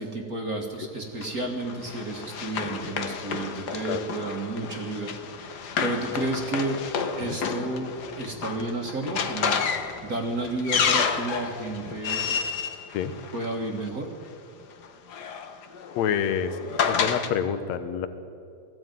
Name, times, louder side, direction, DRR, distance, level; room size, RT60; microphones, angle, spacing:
voice 1, 0.0-5.1 5.8-6.8 7.2-9.6 10.0-12.3 13.3-14.1, right 2 dB, 35° right, 2 dB, 1.6 m, -31 dB
Run, 1.2-13.8 14.8-17.3, left 6 dB, 85° left, 0.9 m, -30 dB
voice 2, 16.0-18.1, left 8 dB, 65° left, 10 dB, 2.1 m, -28 dB
19.0 x 15.0 x 9.3 m, 2.5 s
omnidirectional pair, 3.6 m